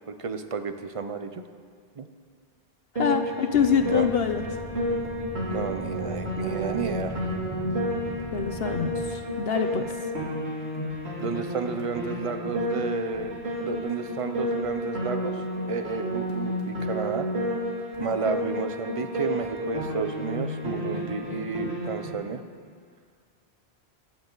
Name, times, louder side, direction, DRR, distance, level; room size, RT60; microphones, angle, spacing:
voice 1, 0.1-1.4 2.0-2.1 3.7-4.1 5.5-7.3 11.2-15.4 15.7-17.3 18.0-22.4, right 5 dB, 35° right, 8 dB, 0.8 m, -31 dB
voice 2, 3.0-4.4 8.3-9.9, left 7 dB, 70° left, 7 dB, 0.9 m, -25 dB
Piano, 3.0-22.1, equal, 75° right, 2.8 m, -31 dB
sound 1, 3.5-9.1, equal, 20° left, 1.7 m, -38 dB
23.5 x 9.9 x 4.0 m, 2.1 s
omnidirectional pair, 1.1 m